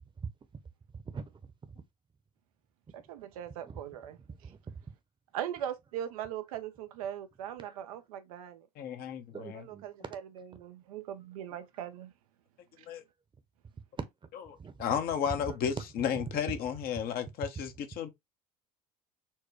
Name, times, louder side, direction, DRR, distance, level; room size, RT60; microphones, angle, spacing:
voice 1, 0.9-1.5 3.2-3.3 3.6-3.8 4.2-4.8 7.6-7.8 9.3-10.1 14.6-14.8 15.4-15.6 16.1-16.2, right 5 dB, 25° right, 0.8 m, -44 dB
voice 2, 2.9-4.2 5.3-8.6 9.5-12.1, right 10 dB, 80° right, 0.5 m, -40 dB
voice 3, 8.8-9.6 12.9-13.0 14.8-18.1, left 8 dB, 55° left, 0.9 m, -33 dB
4.4 x 2.2 x 3.1 m
hypercardioid pair, 70°, 18 cm